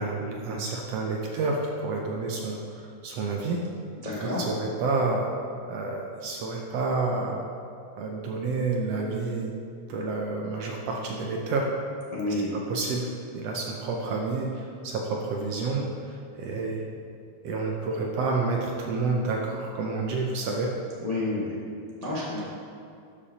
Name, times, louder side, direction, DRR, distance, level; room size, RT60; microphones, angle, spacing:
voice 1, 0.0-3.6 4.2-5.3 5.7-7.5 8.0-9.5 9.9-11.7 12.5-13.1 13.3-16.8 17.4-20.7, right 3 dB, 75° right, 0 dB, 1.5 m, -29 dB
voice 2, 4.0-4.4 12.1-12.5 21.0-21.5 22.0-22.4, left 2 dB, 50° left, -8 dB, 0.4 m, -29 dB
12.5 x 6.7 x 2.8 m, 2.4 s
omnidirectional pair, 3.4 m